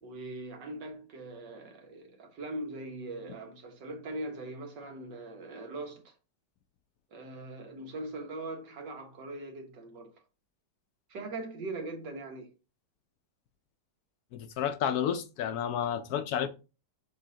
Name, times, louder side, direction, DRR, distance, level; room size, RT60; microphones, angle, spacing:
voice 1, 0.0-6.1 7.1-10.1 11.1-12.5, right 2 dB, 85° right, 2.0 m, -41 dB
voice 2, 14.3-16.5, left 9 dB, 70° left, 1.0 m, -31 dB
6.8 x 5.5 x 2.8 m
omnidirectional pair, 1.9 m